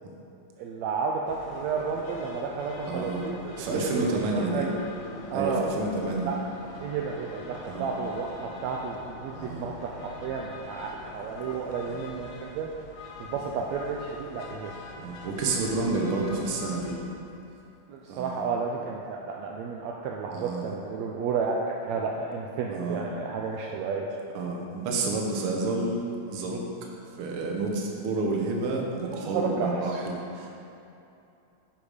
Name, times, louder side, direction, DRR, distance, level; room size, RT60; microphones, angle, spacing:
voice 1, 0.6-3.4 3.7-4.7 5.3-5.7 6.3-6.4 6.8-12.7 13.2-14.7 17.9-21.6 21.8-24.1 29.0-30.0, right 5 dB, 75° right, -1 dB, 1.7 m, -32 dB
sound 1, 1.3-17.0, left 3 dB, 80° left, 2.4 m, -44 dB
voice 2, 2.9-3.3 3.6-4.7 5.3-6.3 7.7-7.9 9.3-9.7 11.9-12.1 15.0-17.0 18.1-18.4 20.3-20.7 22.7-23.1 24.3-26.1 26.3-26.7 27.2-30.6, right 3 dB, 60° right, 0 dB, 1.6 m, -29 dB
10.0 x 5.7 x 5.0 m, 2.8 s
omnidirectional pair, 3.3 m